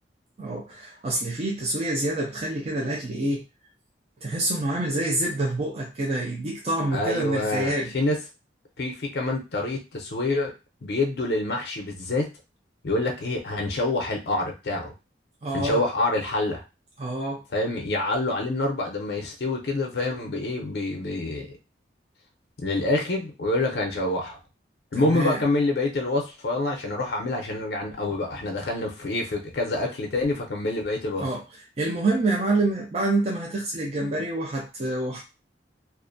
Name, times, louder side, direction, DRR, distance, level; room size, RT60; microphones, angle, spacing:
voice 1, 0.4-3.4 4.2-7.9 15.4-15.8 17.0-17.4 24.9-25.4 31.2-31.4 31.8-35.2, right 2 dB, 35° right, -2 dB, 0.4 m, -27 dB
voice 2, 6.9-8.2 8.8-10.5 10.8-12.3 12.8-14.9 15.5-16.6 17.5-21.5 22.6-24.4 24.9-31.2, left 2 dB, 60° left, 1 dB, 0.5 m, -26 dB
2.4 x 2.1 x 2.5 m, 0.28 s
head